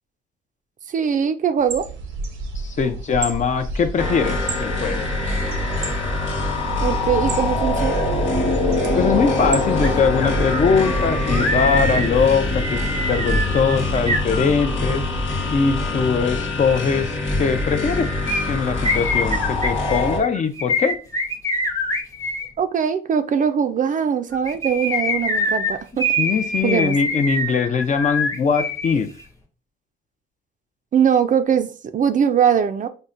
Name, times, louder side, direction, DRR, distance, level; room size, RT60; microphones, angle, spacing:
voice 1, 0.9-1.9 6.8-8.1 22.6-26.1 26.6-26.9 30.9-32.9, right 7 dB, 40° right, 10 dB, 0.4 m, -21 dB
sound 1, 1.6-10.1, right 3 dB, 90° right, 0.8 m, -33 dB
voice 2, 2.5-5.1 9.0-12.8 13.1-15.0 15.5-18.1 18.5-21.0 26.2-29.1, left 5 dB, 40° left, 9 dB, 0.5 m, -21 dB
sound 2, 4.0-20.2, left 2 dB, 75° left, 1.2 m, -23 dB
sound 3, 9.8-9.9 10.2-15.0 18.3-22.5 24.3-28.9 29.2-29.3, left 1 dB, 15° left, 0.8 m, -25 dB
5.4 x 2.1 x 2.5 m, 0.36 s
cardioid pair, 90°, 20 cm